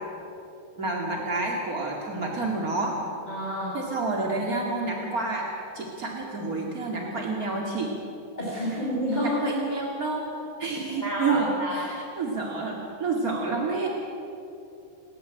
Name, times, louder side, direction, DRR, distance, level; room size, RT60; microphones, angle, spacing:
voice 1, 0.8-3.0 3.7-5.5 5.7-7.9 9.1-10.2 10.6-13.9, right 3 dB, 40° right, -1 dB, 1.2 m, -29 dB
voice 2, 3.3-3.7 8.3-9.4 11.0-11.8, equal, 10° left, -6 dB, 5.1 m, -29 dB
28.5 x 13.5 x 9.0 m, 2.9 s
omnidirectional pair, 5.4 m